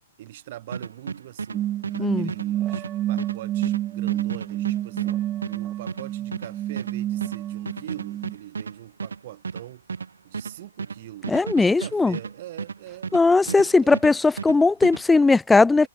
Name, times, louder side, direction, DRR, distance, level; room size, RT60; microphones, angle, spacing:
voice 1, 0.2-1.7 2.0-5.2 5.5-9.8 10.2-13.2 13.4-14.0, right 14 dB, 50° right, 4.1 m, -42 dB
sound 1, 0.7-13.7 13.9-15.0, right 5 dB, 70° right, 1.6 m, -34 dB
sound 2, 1.5-8.3, right 13 dB, 25° right, 1.1 m, -29 dB
voice 2, 2.0-2.3 11.3-12.2 13.1-15.9, left 3 dB, 5° left, 0.3 m, -18 dB
figure-of-eight pair, 110°, 0 cm